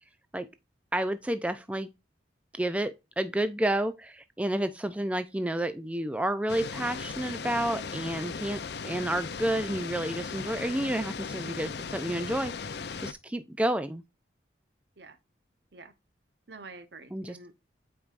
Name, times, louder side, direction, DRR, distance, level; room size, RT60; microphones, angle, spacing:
voice 1, 0.9-1.9 2.5-14.0 17.1-17.4, right 1 dB, 5° right, 0.4 m, -30 dB
sound 1, 6.5-13.1, left 5 dB, 60° left, 0.5 m, -37 dB
voice 2, 16.5-17.6, right 3 dB, 65° right, 0.9 m, -48 dB
8.6 x 4.6 x 2.5 m
head